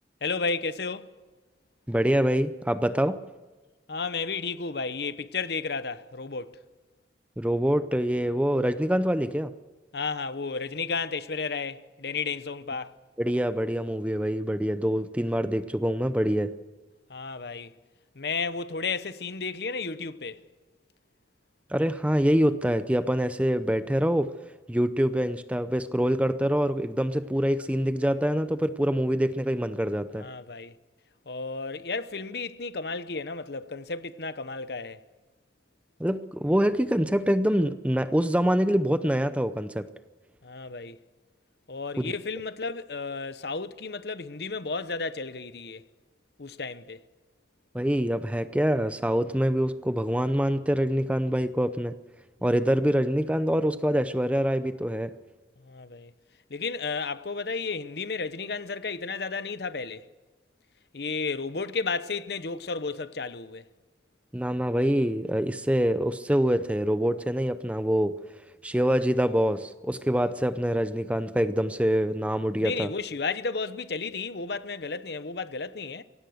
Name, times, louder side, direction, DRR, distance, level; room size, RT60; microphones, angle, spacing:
voice 1, 0.2-1.1 3.9-6.6 9.9-12.9 17.1-17.7 18.1-20.4 30.1-30.8 31.3-35.0 40.4-41.0 41.7-45.8 46.4-47.0 55.6-56.1 56.5-60.1 60.9-63.7 72.6-76.0, left 4 dB, 65° left, 0.9 m, -33 dB
voice 2, 1.9-3.2 7.4-9.5 13.2-16.6 21.7-24.3 24.7-30.3 36.0-39.9 42.0-42.1 47.7-51.9 52.4-55.1 64.3-68.2 68.6-72.9, equal, 5° right, 0.6 m, -25 dB
24.0 x 17.5 x 6.5 m
head